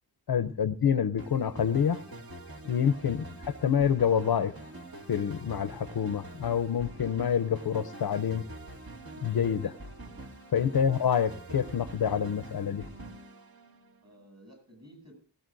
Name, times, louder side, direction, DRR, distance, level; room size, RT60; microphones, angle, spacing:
voice 1, 0.3-2.0 2.6-3.2 3.6-4.5 5.1-8.4 9.2-9.7 10.5-12.8, left 8 dB, 55° left, 0.6 m, -27 dB
sound 1, 1.2-14.1, right 1 dB, 55° right, 2.2 m, -45 dB
voice 2, 14.0-15.1, right 1 dB, 40° right, 7.9 m, -54 dB
18.5 x 16.5 x 2.6 m
wide cardioid pair, 100°, 43 cm